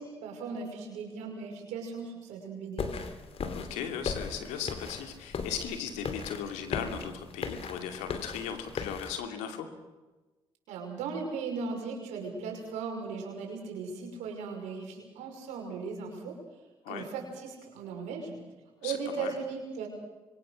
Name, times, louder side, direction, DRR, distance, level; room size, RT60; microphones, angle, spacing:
voice 1, 0.0-3.0 10.7-16.4 16.9-18.4 18.8-19.9, right 5 dB, 80° right, 2 dB, 5.7 m, -37 dB
sound 1, 2.8-9.1, left 5 dB, 55° left, 3.0 m, -38 dB
voice 2, 3.5-9.7 16.8-17.1 18.8-19.3, left 8 dB, 85° left, 6 dB, 2.6 m, -37 dB
25.5 x 23.0 x 6.4 m, 1.2 s
hypercardioid pair, 50°, 12 cm